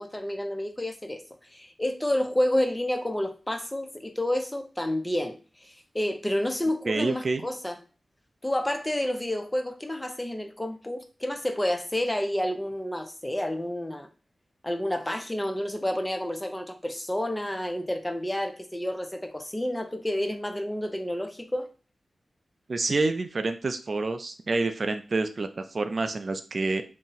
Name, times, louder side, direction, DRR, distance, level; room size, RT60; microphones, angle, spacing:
voice 1, 0.0-7.8 8.4-14.1 14.6-21.7, left 1 dB, 15° left, 7 dB, 0.5 m, -30 dB
voice 2, 6.9-7.5 22.7-26.8, right 3 dB, 60° right, 8 dB, 0.3 m, -28 dB
2.6 x 2.0 x 3.8 m, 0.35 s
cardioid pair, 55°, 0 cm